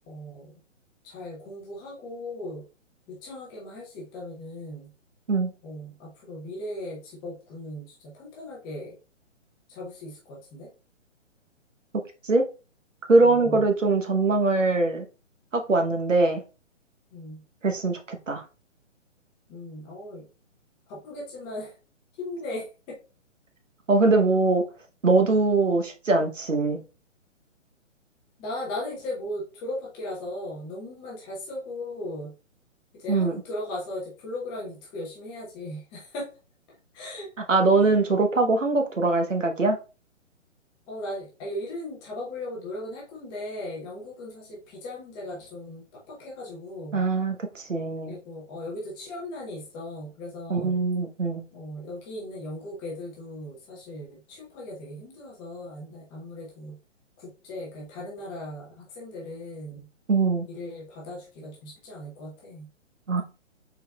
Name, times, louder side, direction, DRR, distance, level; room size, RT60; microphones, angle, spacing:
voice 1, 0.1-0.5 1.0-2.6 3.1-4.9 5.6-9.0 9.7-10.7 13.2-13.7 17.1-17.4 19.5-20.3 20.9-21.8 22.2-23.0 28.4-32.3 32.9-36.3 36.9-37.3 37.9-38.0 40.9-47.0 48.1-50.8 51.5-56.8 57.2-59.9 60.5-62.7, left 1 dB, 10° left, 0.7 m, -37 dB
voice 2, 13.1-15.1 15.5-16.4 17.6-18.4 23.9-24.6 25.0-26.8 33.1-33.4 37.5-39.8 46.9-48.2 50.5-51.4 60.1-60.5 63.1-63.2, right 3 dB, 80° right, 1.0 m, -22 dB
5.5 x 4.0 x 2.3 m
figure-of-eight pair, 135°, 37 cm